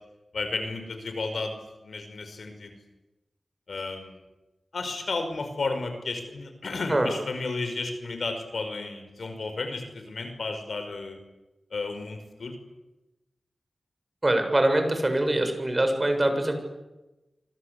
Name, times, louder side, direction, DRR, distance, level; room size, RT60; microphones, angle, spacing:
voice 1, 0.3-2.8 3.7-4.2 4.7-11.2 11.7-12.6, left 3 dB, 85° left, 7 dB, 5.3 m, -33 dB
voice 2, 14.2-16.6, right 1 dB, 30° right, 6 dB, 7.2 m, -23 dB
27.0 x 26.0 x 8.4 m, 1.0 s
wide cardioid pair, 60°, 0 cm